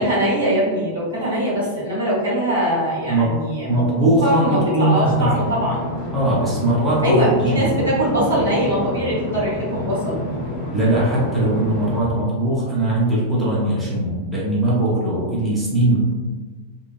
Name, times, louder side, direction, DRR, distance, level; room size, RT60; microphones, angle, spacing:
voice 1, 0.0-5.8 7.0-10.2, equal, 70° right, -8 dB, 1.2 m, -22 dB
voice 2, 3.7-5.3 6.1-7.8 10.7-16.0, right 1 dB, 15° right, -7 dB, 0.8 m, -20 dB
sound 1, 5.1-12.0, left 1 dB, 55° left, 0.9 m, -29 dB
3.0 x 2.2 x 2.4 m, 1.4 s
figure-of-eight pair, 90°, 0 cm